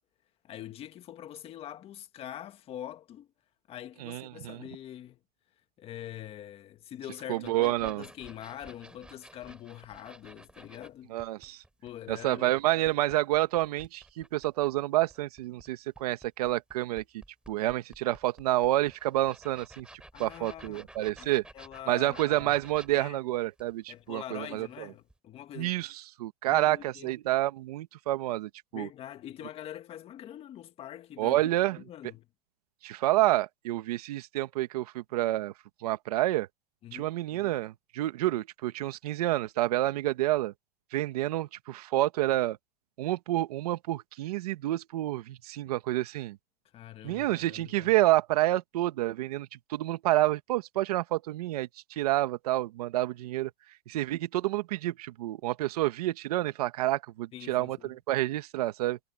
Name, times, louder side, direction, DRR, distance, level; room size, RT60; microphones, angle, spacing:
voice 1, 0.4-3.3 3.7-5.2 5.8-11.1 11.8-12.5 20.1-20.9 21.2-22.6 22.9-23.2 23.9-25.8 26.5-27.1 28.7-31.5 31.8-32.3 36.8-37.1 46.7-47.9 57.3-57.9, left 11 dB, 30° left, 1.8 m, -44 dB
voice 2, 4.0-4.6 7.3-8.0 11.1-11.6 12.1-17.0 17.5-19.9 20.2-21.4 21.9-24.9 25.5-28.9 31.2-31.8 32.8-35.5 35.8-36.5 36.9-40.5 40.9-42.6 43.0-46.4 47.0-53.5 53.9-59.0, right 16 dB, 75° right, 1.7 m, -29 dB
sound 1, 7.4-10.9 11.2-14.7 15.1-24.8 25.1-25.2, right 2 dB, 5° right, 3.5 m, -53 dB
supercardioid pair, 140°, 20 cm